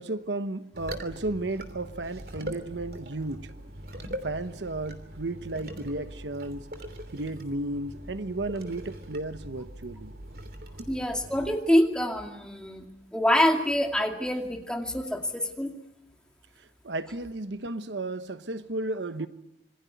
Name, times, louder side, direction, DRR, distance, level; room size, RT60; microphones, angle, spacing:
voice 1, 0.0-3.5 4.2-6.6 7.1-10.1 16.8-19.3, right 2 dB, 75° right, 1.1 m, -33 dB
sound 1, 0.7-11.6, equal, 55° right, 3.0 m, -42 dB
voice 2, 10.9-12.9 13.1-15.7, left 1 dB, 5° left, 2.3 m, -26 dB
26.5 x 21.5 x 9.4 m
head